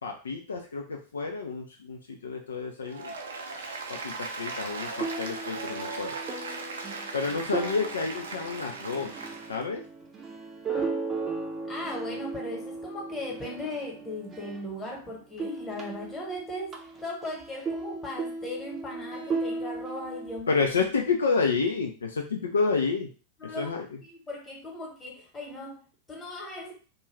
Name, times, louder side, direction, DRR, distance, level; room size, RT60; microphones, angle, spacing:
voice 1, 0.0-3.1 3.9-6.1 7.1-9.1 9.5-9.8 20.5-23.1 23.4-23.9, left 4 dB, 70° left, 0.4 m, -29 dB
Applause, 2.8-9.6, right 3 dB, 65° right, 0.5 m, -38 dB
sound 1, 5.0-15.0 15.3-20.4, right 4 dB, 20° right, 0.6 m, -36 dB
voice 2, 11.7-16.7 17.0-20.6 23.4-23.8 24.0-25.8 26.1-26.7, left 1 dB, 15° left, 1.1 m, -37 dB
2.5 x 2.2 x 3.2 m
figure-of-eight pair, 90°, 0 cm